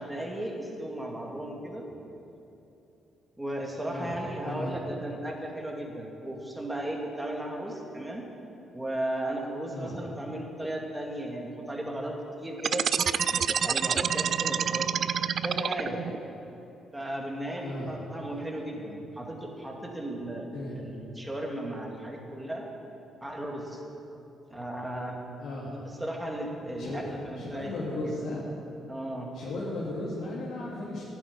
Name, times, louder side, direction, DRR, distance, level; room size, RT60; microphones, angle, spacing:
voice 1, 0.0-1.9 3.4-8.3 8.7-12.9 13.3-14.9 15.4-16.1 16.9-20.5 20.8-22.7 23.2-23.8 24.5-25.2 25.7-28.1 28.9-29.3, right 1 dB, 10° right, 0 dB, 2.3 m, -35 dB
voice 2, 4.4-4.8 9.7-10.0 17.6-17.9 18.3-18.4 20.5-20.8 25.4-25.7 26.8-27.0 27.3-28.4 29.3-31.0, left 2 dB, 75° left, -7 dB, 2.7 m, -36 dB
sound 1, 12.6-16.2, right 7 dB, 55° right, 0.4 m, -27 dB
11.0 x 8.7 x 9.7 m, 2.9 s
cardioid pair, 90°, 0 cm